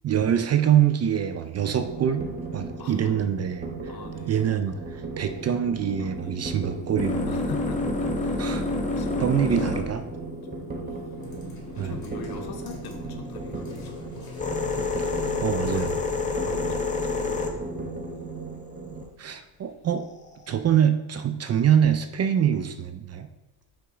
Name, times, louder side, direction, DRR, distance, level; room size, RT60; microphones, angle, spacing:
voice 1, 0.0-2.3 2.5-3.9 4.3-7.4 8.4-8.7 9.2-10.1 11.8-12.0 15.4-16.0 16.4-16.5 19.2-20.1 20.5-23.3, right 9 dB, 40° right, 0.4 m, -24 dB
sound 1, 1.6-19.0, right 3 dB, 20° right, 1.0 m, -37 dB
voice 2, 2.8-3.2 3.8-4.4 6.0-6.4 7.3-8.5 8.9-9.4 9.7-10.1 10.5-11.0 11.7-14.2 15.1-17.8 18.8-19.1, left 4 dB, 60° left, 1.0 m, -43 dB
sound 2, 6.2-12.5 13.3-19.0 20.0-20.5, left 3 dB, 15° left, 0.9 m, -30 dB
sound 3, 11.1-16.4, left 4 dB, 40° left, 2.1 m, -43 dB
5.4 x 3.7 x 4.9 m
supercardioid pair, 80°, 42 cm